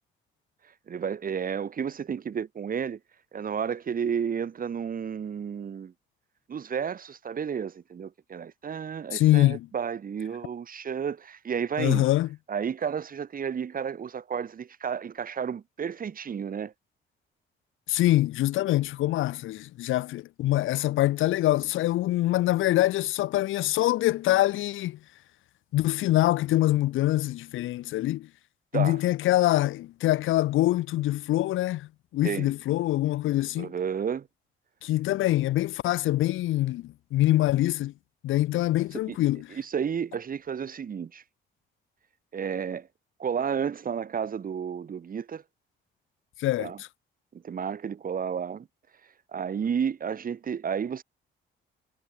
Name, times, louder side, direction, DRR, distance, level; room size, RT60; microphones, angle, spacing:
voice 1, 0.9-3.0 3.3-5.9 6.5-12.1 12.5-16.7 28.7-29.0 32.2-32.5 33.6-34.3 38.9-39.2 39.5-41.2 42.3-42.9 43.2-45.4 46.6-46.8 47.3-48.7 49.3-51.0, right 7 dB, 45° right, 1.8 m, -32 dB
voice 2, 9.1-9.7 11.8-12.3 17.9-25.0 25.7-28.3 28.7-31.9 32.1-33.7 34.8-37.9 38.2-39.5 46.4-46.9, left 15 dB, 80° left, 0.9 m, -24 dB
cardioid pair, 90°, 20 cm